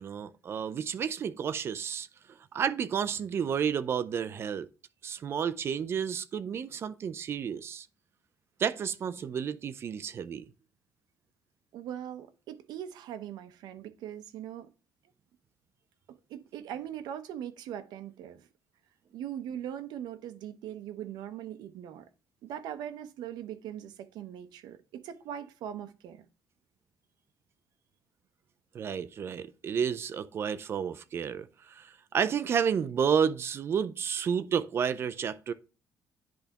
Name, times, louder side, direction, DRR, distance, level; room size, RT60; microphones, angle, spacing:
voice 1, 0.0-2.1 2.5-4.7 5.0-7.9 8.6-10.4 28.7-35.5, right 7 dB, 35° right, 0.4 m, -31 dB
voice 2, 11.7-14.7 16.3-18.5 19.1-22.1 22.4-26.3, right 10 dB, 70° right, 0.7 m, -40 dB
10.0 x 3.4 x 2.9 m
cardioid pair, 165°, 7 cm